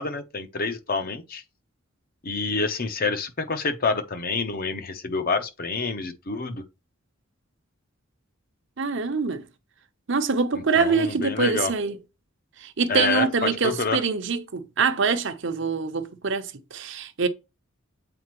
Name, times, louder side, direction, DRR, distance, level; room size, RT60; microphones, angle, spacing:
voice 1, 0.0-1.4 2.2-6.6 10.5-11.7 12.9-14.0, left 4 dB, 45° left, 0.8 m, -27 dB
voice 2, 8.8-9.5 10.1-12.0 12.6-17.3, right 5 dB, 60° right, 0.8 m, -25 dB
7.8 x 4.2 x 3.0 m
head